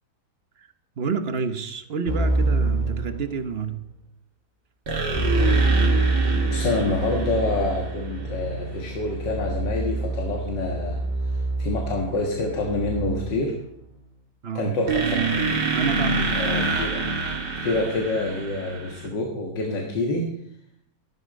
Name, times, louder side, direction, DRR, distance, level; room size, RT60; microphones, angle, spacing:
voice 1, 1.0-3.8 14.4-14.8 15.7-16.5, right 5 dB, 45° right, 1.0 m, -29 dB
Keyboard (musical), 2.1-3.7 5.1-13.5, right 2 dB, 5° left, 3.3 m, -26 dB
sound 1, 4.9-8.5 14.9-19.1, right 4 dB, 75° right, 2.8 m, -27 dB
voice 2, 6.5-13.5 14.5-15.4 16.3-17.0 17.6-20.3, left 2 dB, 90° left, 2.3 m, -27 dB
13.5 x 12.0 x 5.2 m
omnidirectional pair, 1.9 m